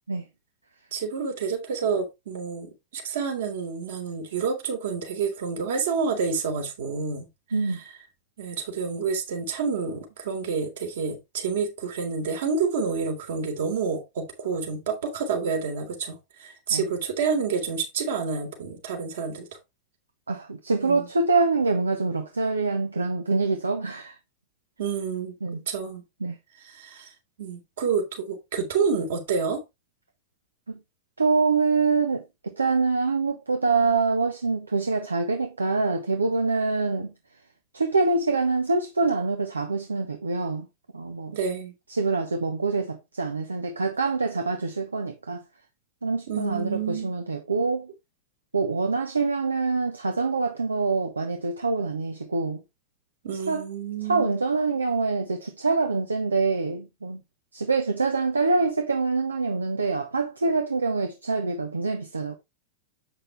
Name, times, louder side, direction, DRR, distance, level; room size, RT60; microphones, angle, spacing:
voice 1, 0.9-7.3 8.4-19.5 20.8-21.1 24.8-25.3 25.7-26.0 26.7-27.1 27.4-29.6 41.3-41.7 46.3-47.1 53.2-54.3, right 5 dB, 60° right, 3.4 m, -28 dB
voice 2, 7.5-7.8 16.7-16.8 20.3-24.2 25.4-25.6 26.2-26.4 30.7-30.8 31.2-37.1 37.7-40.7 40.9-41.4 41.9-45.4 46.0-47.9 48.5-52.6 53.5-53.7 54.1-57.2 57.5-62.3, right 3 dB, 75° right, 1.1 m, -25 dB
8.3 x 6.6 x 3.4 m
figure-of-eight pair, 90°, 0 cm